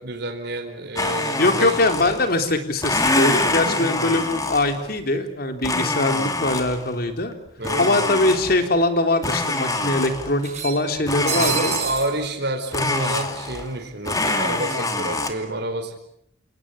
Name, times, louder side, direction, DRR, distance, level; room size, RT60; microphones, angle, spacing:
voice 1, 0.0-1.8 3.6-3.9 7.6-7.9 11.4-15.9, right 1 dB, 60° right, 3 dB, 4.5 m, -29 dB
Domestic sounds home sounds, 1.0-2.4 2.8-4.9 5.6-6.9 7.6-8.8 9.2-10.4 11.0-12.2 12.7-13.8 14.0-15.3, left 2 dB, 20° left, 2.6 m, -25 dB
voice 2, 1.4-7.3 7.8-11.7, left 2 dB, 50° left, 6 dB, 3.6 m, -22 dB
sound 1, 7.0-7.1 7.4-7.5 8.6-8.7 9.0-9.1 10.4-12.1, right 9 dB, 35° right, 6.0 m, -28 dB
29.5 x 18.5 x 10.0 m, 0.75 s
head